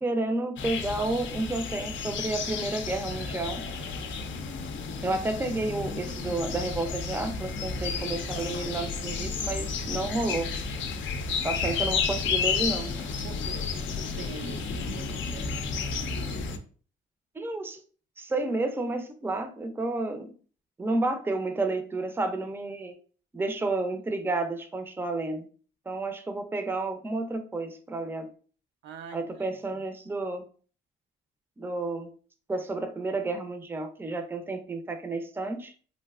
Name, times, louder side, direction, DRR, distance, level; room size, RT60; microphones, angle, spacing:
voice 1, 0.0-3.7 5.0-10.5 11.4-13.1 17.3-17.8 18.2-20.3 20.8-22.9 23.3-25.5 25.9-28.3 29.1-30.4 31.6-32.1 32.5-35.7, right 2 dB, 10° right, 0.5 m, -31 dB
sound 1, 0.6-16.6, left 5 dB, 70° left, 0.5 m, -32 dB
voice 2, 13.2-15.7 28.8-29.8, right 6 dB, 70° right, 0.4 m, -45 dB
3.2 x 2.5 x 2.4 m
cardioid pair, 90°, 20 cm